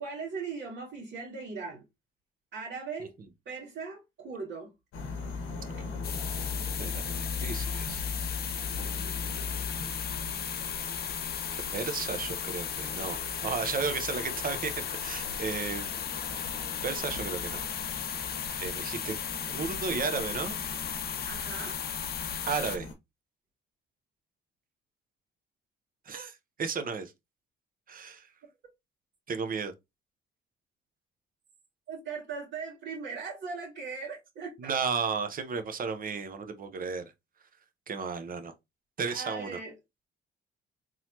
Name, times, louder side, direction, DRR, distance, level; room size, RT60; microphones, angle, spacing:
voice 1, 0.0-1.8 2.5-3.1 3.5-4.7 9.0-9.2 21.3-21.8 31.9-34.7 39.1-39.7, right 5 dB, 75° right, 2.0 m, -39 dB
sound 1, 4.9-22.9, left 4 dB, 90° left, 1.0 m, -39 dB
sound 2, 6.0-22.8, left 8 dB, 50° left, 0.6 m, -36 dB
voice 2, 6.8-8.5 8.8-9.9 11.7-13.2 13.4-15.9 16.2-16.4 16.8-17.6 18.6-19.2 19.5-20.6 22.5-22.9 26.1-27.1 27.9-28.3 29.3-29.7 34.6-37.1 37.9-38.5 39.0-39.6, right 5 dB, 45° right, 0.8 m, -34 dB
3.9 x 3.0 x 2.8 m
cardioid pair, 90°, 20 cm